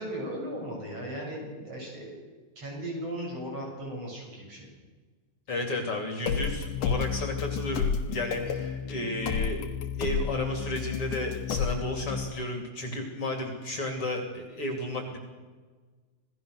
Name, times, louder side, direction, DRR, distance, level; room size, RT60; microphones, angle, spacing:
voice 1, 0.0-2.2 2.6-4.7, right 1 dB, 50° right, -2 dB, 9.1 m, -37 dB
voice 2, 5.5-9.6 10.0-15.2, left 1 dB, 45° left, 3 dB, 3.5 m, -33 dB
sound 1, 6.3-12.3, left 7 dB, 80° left, 2.8 m, -31 dB
28.5 x 18.5 x 6.5 m, 1.4 s
omnidirectional pair, 3.6 m